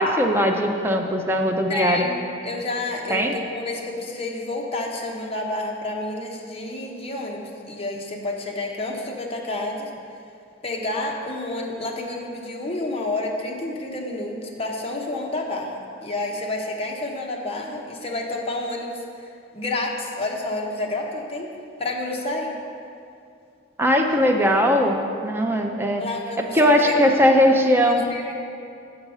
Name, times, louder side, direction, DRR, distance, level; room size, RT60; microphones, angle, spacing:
voice 1, 0.0-2.1 3.1-3.3 23.8-25.0 25.2-26.0 26.5-28.0, equal, 10° right, 2 dB, 0.6 m, -19 dB
voice 2, 1.7-2.2 2.4-9.9 10.6-21.5 21.8-22.5 26.0-26.9 27.9-28.3, left 2 dB, 30° left, -1 dB, 0.9 m, -29 dB
6.6 x 6.0 x 5.4 m, 2.5 s
head